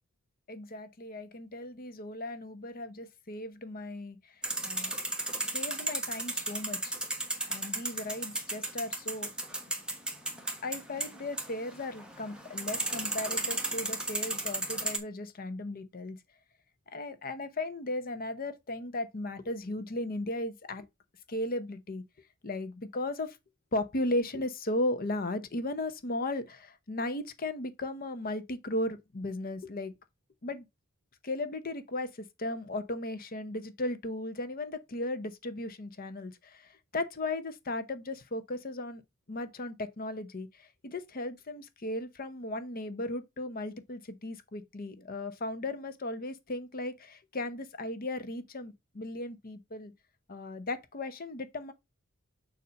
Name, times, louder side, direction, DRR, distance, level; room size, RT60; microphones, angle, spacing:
voice 1, 0.5-4.2 4.6-5.0 5.4-6.9 7.5-9.3 10.6-16.2 16.9-20.9 21.3-22.0 22.4-23.4 23.7-29.9 30.4-30.7 31.2-39.0 39.3-49.9 50.3-51.7, left 1 dB, 45° left, 0.8 m, -36 dB
sound 1, 4.4-15.0, right 2 dB, 5° right, 1.1 m, -35 dB
6.8 x 2.7 x 5.2 m
head